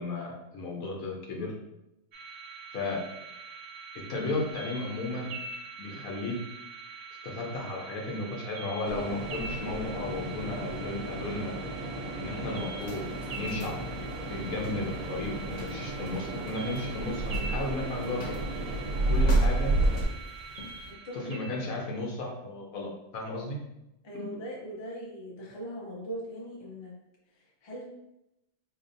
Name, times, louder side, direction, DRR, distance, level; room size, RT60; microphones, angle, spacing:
voice 1, 0.0-1.5 2.7-3.0 4.1-5.3 5.8-6.4 7.2-11.6 12.2-13.1 13.4-13.8 14.3-18.3 19.1-19.7 21.1-23.6 24.1-24.3, left 2 dB, 85° left, -1 dB, 1.3 m, -34 dB
sound 1, 2.1-22.0, right 4 dB, 60° right, 0.7 m, -44 dB
sound 2, 8.8-20.1, right 2 dB, 90° right, 1.1 m, -31 dB
sound 3, 12.8-20.9, left 2 dB, 60° left, 1.1 m, -47 dB
voice 2, 20.9-21.3 24.0-27.0 27.3-27.8, right 1 dB, 35° left, -3 dB, 0.4 m, -40 dB
4.3 x 2.8 x 2.6 m, 0.89 s
omnidirectional pair, 1.4 m